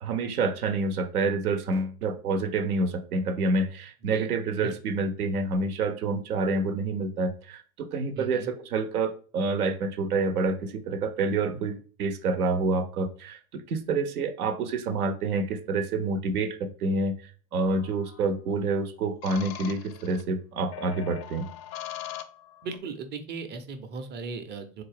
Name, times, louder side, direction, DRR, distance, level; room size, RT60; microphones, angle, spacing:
voice 1, 0.0-17.1 17.5-21.5, right 3 dB, 85° right, 0.6 m, -28 dB
voice 2, 8.1-8.5 22.6-24.8, right 4 dB, 25° right, 0.5 m, -37 dB
sound 1, 17.7-18.2 19.2-20.2 20.7-22.8, left 12 dB, 40° left, 0.4 m, -41 dB
3.7 x 2.4 x 3.2 m
hypercardioid pair, 85°, 44 cm